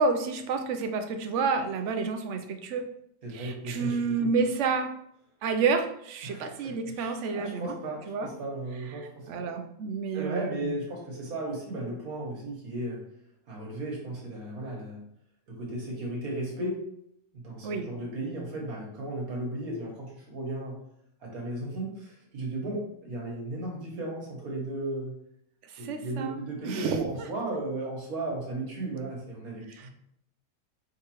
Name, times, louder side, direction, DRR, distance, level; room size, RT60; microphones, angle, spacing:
voice 1, 0.0-2.9 3.3-4.9 5.4-7.7 8.1-8.3 9.3-10.7 17.6-17.9 25.7-26.4 26.6-27.0 29.8-29.9, right 4 dB, 65° right, 6 dB, 0.8 m, -29 dB
voice 2, 3.2-4.3 6.2-9.5 10.1-13.0 13.5-15.0 15.5-16.8 17.3-20.8 21.2-25.2 25.8-29.9, right 2 dB, 85° right, -2 dB, 1.8 m, -35 dB
4.8 x 3.3 x 3.0 m, 0.72 s
omnidirectional pair, 1.5 m